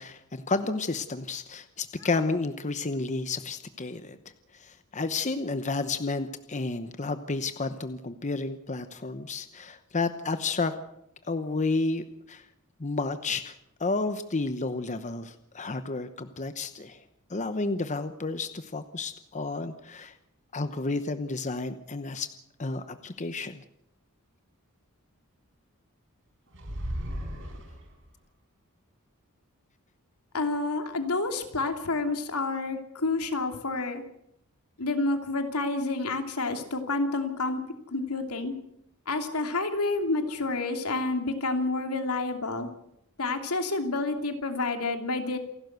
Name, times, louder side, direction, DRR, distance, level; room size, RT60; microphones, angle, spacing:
voice 1, 0.0-4.2 4.5-10.7 11.2-12.4 12.8-13.5 13.8-17.0 17.3-20.2 20.5-22.3 22.6-23.6, left 3 dB, 35° left, 10 dB, 0.9 m, -31 dB
sound 1, 26.5-28.2, equal, 60° right, 5.3 m, -35 dB
voice 2, 30.3-34.0 34.8-37.6 37.9-38.5 39.1-42.7 43.2-45.4, left 3 dB, 80° left, 6 dB, 2.9 m, -29 dB
28.0 x 12.0 x 8.0 m, 0.80 s
head